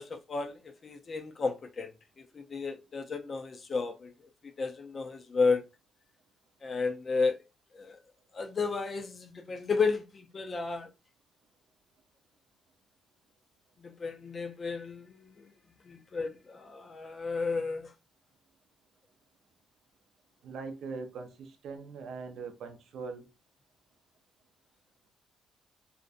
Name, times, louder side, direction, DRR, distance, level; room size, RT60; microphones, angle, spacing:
voice 1, 0.0-1.9 2.2-4.1 4.6-5.6 6.6-7.4 7.7-8.0 8.3-10.9 13.8-15.5 15.9-17.9, left 4 dB, 40° left, 0.4 m, -32 dB
voice 2, 20.4-23.3, right 4 dB, 70° right, 0.5 m, -41 dB
2.5 x 2.1 x 2.4 m
cardioid pair, 90°, 0 cm